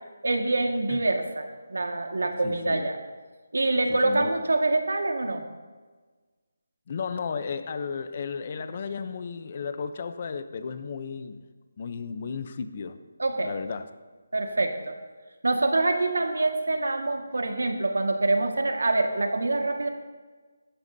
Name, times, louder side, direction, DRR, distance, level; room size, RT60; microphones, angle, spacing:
voice 1, 0.2-3.0 3.5-5.4 13.2-13.5 14.3-15.0 15.4-19.9, right 2 dB, 90° right, 4 dB, 1.8 m, -25 dB
voice 2, 2.4-2.9 3.9-4.4 6.9-11.4 11.8-13.0 13.4-13.9, left 5 dB, 30° left, 11 dB, 0.7 m, -34 dB
16.5 x 13.0 x 2.8 m, 1.4 s
figure-of-eight pair, 175°, 0 cm